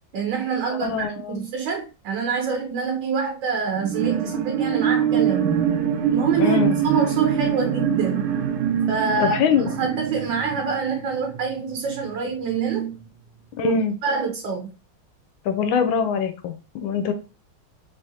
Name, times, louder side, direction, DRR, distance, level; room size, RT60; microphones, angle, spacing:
voice 1, 0.1-5.5 6.1-6.6 6.8-8.3 8.9-13.0 13.6-13.7 14.0-14.7, right 6 dB, 70° right, 2 dB, 1.4 m, -26 dB
voice 2, 0.7-1.4 6.4-6.8 9.2-9.7 13.6-14.0 15.4-17.1, left 6 dB, 80° left, 8 dB, 1.4 m, -23 dB
sound 1, 3.7-11.5 12.0-12.1, right 8 dB, 85° right, 1.5 m, -24 dB
3.7 x 3.4 x 2.8 m, 0.33 s
omnidirectional pair, 2.2 m